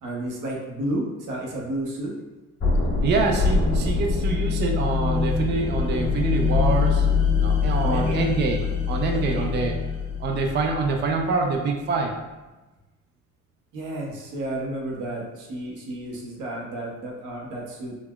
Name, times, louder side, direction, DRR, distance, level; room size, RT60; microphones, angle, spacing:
voice 1, 0.0-2.1 7.8-8.3 9.1-9.4 13.7-17.9, right 1 dB, 80° right, -1 dB, 0.8 m, -32 dB
sound 1, 2.6-11.5, left 5 dB, 55° left, 1.3 m, -24 dB
voice 2, 3.0-7.1 7.4-8.6 8.9-9.7 10.2-12.1, right 4 dB, 35° right, 2 dB, 0.4 m, -25 dB
3.9 x 2.0 x 2.2 m, 1.1 s
cardioid pair, 90°, 30 cm